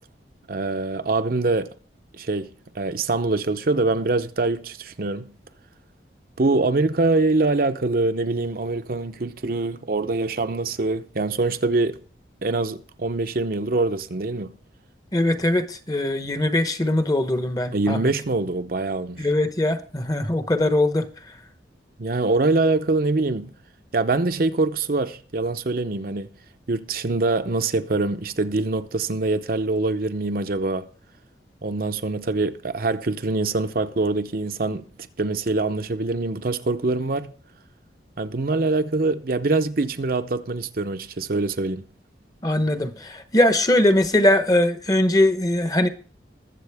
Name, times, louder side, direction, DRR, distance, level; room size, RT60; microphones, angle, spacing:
voice 1, 0.5-1.7 2.2-2.5 2.7-5.3 6.4-12.0 12.4-14.6 17.7-19.3 22.0-23.5 23.9-26.3 26.7-30.9 31.6-34.9 35.2-37.3 38.2-41.8, right 3 dB, 50° right, 0.7 m, -24 dB
voice 2, 15.1-18.1 19.2-21.1 42.4-45.9, left 1 dB, 20° left, 0.9 m, -21 dB
21.0 x 7.5 x 3.5 m
head